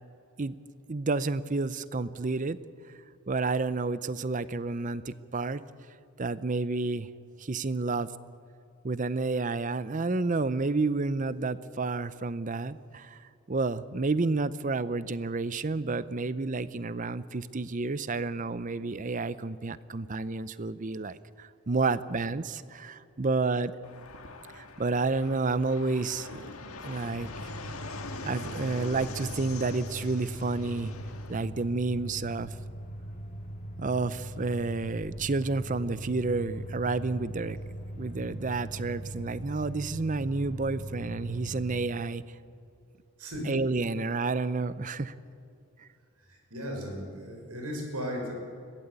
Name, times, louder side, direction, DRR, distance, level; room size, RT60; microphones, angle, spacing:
voice 1, 0.9-2.6 3.3-5.6 6.2-7.1 7.4-8.1 8.8-13.2 13.5-23.7 24.5-26.5 26.8-27.3 28.2-30.9 31.3-32.5 33.8-37.6 38.0-42.2 43.4-45.1 45.8-45.9, right 3 dB, 35° right, 16 dB, 0.6 m, -30 dB
Fixed-wing aircraft airplane, 23.8-31.5, left 3 dB, 75° left, 1.7 m, -43 dB
sound 1, 27.1-41.9, right 1 dB, 35° left, 2.5 m, -40 dB
voice 2, 43.2-43.5 46.3-48.3, equal, 90° right, 2 dB, 5.9 m, -36 dB
22.0 x 16.5 x 8.2 m, 2.5 s
head